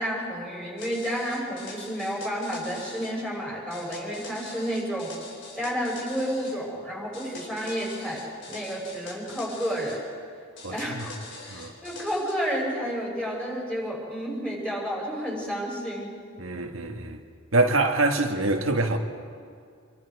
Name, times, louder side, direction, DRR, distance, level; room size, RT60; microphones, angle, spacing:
voice 1, 0.0-5.1 5.5-10.0 10.7-16.1, equal, 5° left, 6.1 m, -31 dB
sound 1, 0.8-3.1 3.7-6.6 7.1-10.0 10.6-12.3, left 3 dB, 60° left, 4.1 m, -43 dB
voice 2, 10.6-11.0 11.5-11.7 16.4-17.2 17.5-19.0, right 2 dB, 80° right, 1.7 m, -25 dB
27.0 x 23.5 x 4.8 m
head